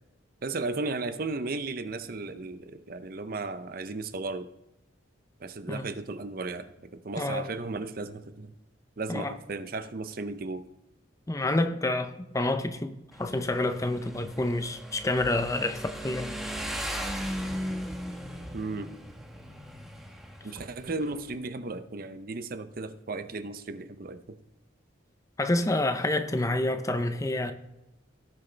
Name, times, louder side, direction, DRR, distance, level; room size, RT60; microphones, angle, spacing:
voice 1, 0.4-4.5 5.4-8.5 9.0-10.7 18.5-19.0 20.4-24.4, right 3 dB, 45° right, 0.6 m, -35 dB
voice 2, 7.2-7.5 9.1-9.3 11.3-16.3 25.4-27.5, left 2 dB, 15° left, 0.5 m, -28 dB
Motorcycle, 13.1-21.3, equal, ahead, 1.0 m, -38 dB
17.5 x 6.4 x 3.3 m
head